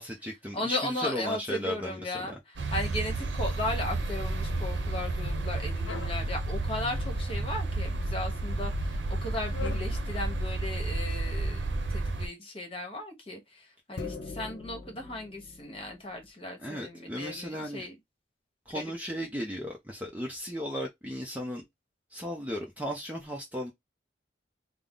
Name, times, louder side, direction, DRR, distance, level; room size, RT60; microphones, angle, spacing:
voice 1, 0.0-2.1 16.6-17.8 18.7-21.6 22.1-23.7, equal, 10° right, 0.5 m, -35 dB
voice 2, 0.5-11.6 11.9-17.9 18.7-18.8, left 1 dB, 30° left, 1.1 m, -36 dB
sound 1, 2.6-12.3, right 2 dB, 70° right, 0.7 m, -31 dB
sound 2, 5.9-6.2 6.8-7.5 8.2-8.5 9.5-9.9, left 5 dB, 90° left, 0.7 m, -41 dB
sound 3, 14.0-16.3, left 3 dB, 50° left, 0.8 m, -42 dB
3.6 x 2.0 x 3.7 m
head